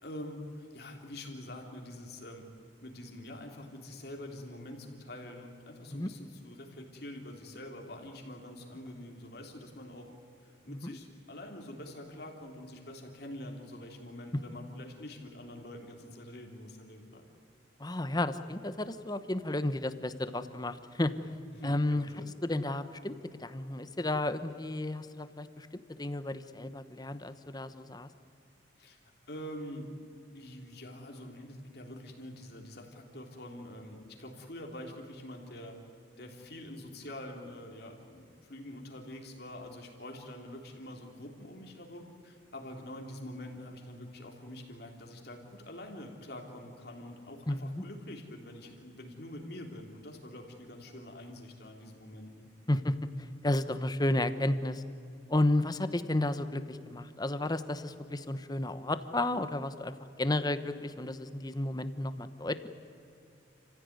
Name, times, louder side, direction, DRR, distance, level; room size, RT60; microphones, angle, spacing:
voice 1, 0.0-2.4 2.8-10.1 10.4-17.2 21.5-22.3 28.8-29.9 30.3-35.8 36.2-52.5, left 1 dB, 60° left, 2 dB, 3.5 m, -45 dB
voice 2, 17.8-21.1 21.6-22.1 22.4-28.1 47.5-47.8 52.7-53.0 53.4-54.8 55.3-62.7, left 1 dB, 20° left, 11 dB, 1.0 m, -32 dB
29.0 x 15.5 x 9.5 m, 2.7 s
head